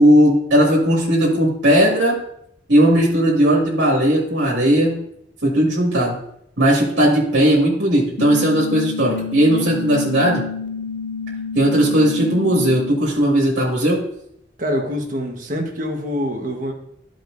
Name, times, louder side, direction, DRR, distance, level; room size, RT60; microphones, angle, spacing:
voice 1, 0.0-2.2 2.7-5.0 5.4-6.2 6.6-10.4 11.5-14.0, equal, 90° right, -4 dB, 2.2 m, -17 dB
sound 1, 8.2-13.1, left 5 dB, 70° left, 0.4 m, -29 dB
voice 2, 14.6-16.7, equal, 45° right, 2 dB, 1.3 m, -25 dB
13.5 x 5.2 x 2.6 m, 0.73 s
head